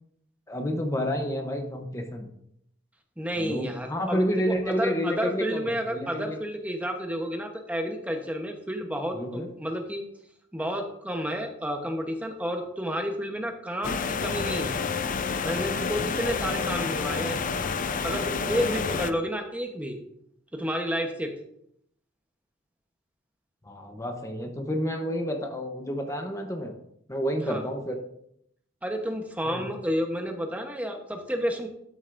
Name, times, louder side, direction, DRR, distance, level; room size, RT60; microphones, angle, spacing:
voice 1, 0.5-2.3 3.4-6.4 9.1-9.5 17.4-17.5 23.6-26.7 27.1-28.0 29.5-29.6, equal, 15° left, 3 dB, 0.8 m, -30 dB
voice 2, 3.2-4.2 4.7-10.0 10.5-14.7 15.4-17.4 18.0-20.0 20.5-21.3 27.4-27.6 28.8-31.7, equal, 10° right, 3 dB, 1.0 m, -31 dB
sound 1, 13.8-19.1, left 5 dB, 45° left, 0.5 m, -29 dB
12.5 x 7.9 x 2.6 m, 0.73 s
head